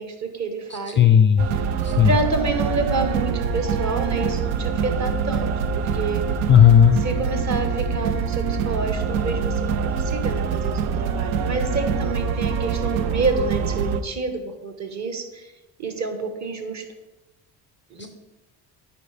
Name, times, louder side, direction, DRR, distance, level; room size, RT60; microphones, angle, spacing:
voice 1, 0.0-1.1 2.0-6.2 7.0-15.5 15.8-16.8 17.9-18.1, right 3 dB, 35° right, 6 dB, 1.2 m, -28 dB
voice 2, 1.0-1.5 1.8-2.1 6.5-7.0 18.0-18.1, left 9 dB, 25° left, 7 dB, 0.4 m, -14 dB
sound 1, 1.4-14.0, right 6 dB, 70° right, 0.6 m, -25 dB
9.7 x 4.4 x 3.4 m, 1.0 s
hypercardioid pair, 60°, 49 cm